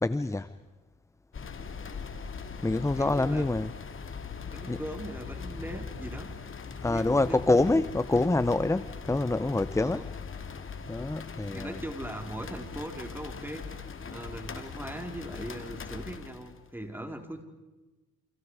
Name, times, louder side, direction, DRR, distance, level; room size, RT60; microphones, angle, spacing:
voice 1, 0.0-0.5 2.6-3.7 4.7-4.8 6.8-10.1 10.9-11.8, left 2 dB, 10° left, 14 dB, 0.8 m, -26 dB
sound 1, 1.3-16.7, left 5 dB, 45° left, 2.6 m, -41 dB
voice 2, 3.0-3.4 4.5-6.3 6.8-7.8 8.1-8.2 9.8-10.1 11.5-13.6 14.1-17.4, right 1 dB, 5° right, 4 dB, 4.4 m, -40 dB
29.5 x 29.5 x 4.9 m, 1.2 s
cardioid pair, 90°, 30 cm